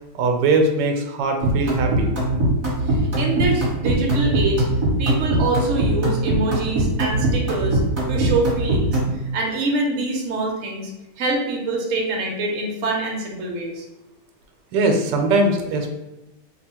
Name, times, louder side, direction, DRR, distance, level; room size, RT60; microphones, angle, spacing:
voice 1, 0.1-2.1 14.7-15.9, right 2 dB, 85° right, 3 dB, 1.3 m, -20 dB
sound 1, 1.4-9.2, right 2 dB, 35° right, 1.3 m, -21 dB
voice 2, 2.8-4.6 5.0-7.8 8.1-9.0 9.3-10.9 11.2-13.8, right 2 dB, 55° right, 0 dB, 1.1 m, -25 dB
3.3 x 2.2 x 4.3 m, 0.97 s
omnidirectional pair, 1.8 m